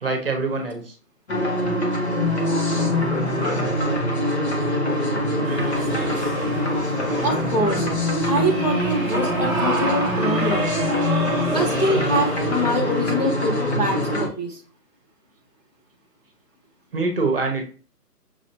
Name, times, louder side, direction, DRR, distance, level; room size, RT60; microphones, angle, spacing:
voice 1, 0.0-0.9 16.9-17.6, right 3 dB, 35° right, 4 dB, 0.9 m, -24 dB
sound 1, 1.3-14.3, left 1 dB, 40° left, 1.2 m, -23 dB
sound 2, 5.4-12.8, right 2 dB, 10° right, 1.1 m, -30 dB
voice 2, 7.2-7.9 8.2-10.7 11.5-14.6, equal, 25° left, -4 dB, 0.7 m, -24 dB
6.2 x 2.7 x 2.8 m, 0.37 s
figure-of-eight pair, 160°, 48 cm